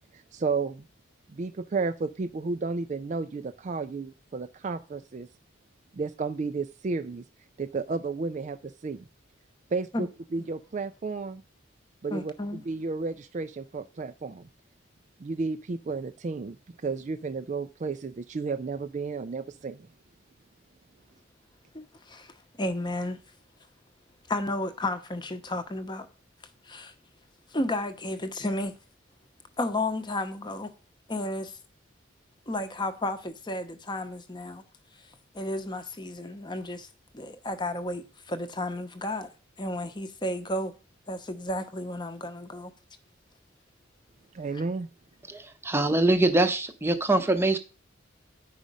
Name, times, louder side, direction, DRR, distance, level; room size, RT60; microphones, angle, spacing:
voice 1, 0.3-0.9 1.3-5.3 5.9-7.2 7.6-9.0 9.7-11.4 12.0-12.3 12.7-14.5 15.2-16.6 16.8-19.9 44.3-44.9, right 4 dB, 35° right, 0.3 m, -32 dB
voice 2, 12.1-12.6 21.7-23.2 24.3-26.1 26.6-26.9 27.5-28.7 29.6-30.7 31.1-31.6 32.5-34.6 35.3-36.9 37.1-39.3 39.6-40.7 41.1-42.7 44.5-44.6, left 1 dB, 25° left, 0.8 m, -32 dB
voice 3, 45.3-47.6, right 2 dB, 10° right, 0.7 m, -23 dB
10.0 x 5.0 x 5.3 m
head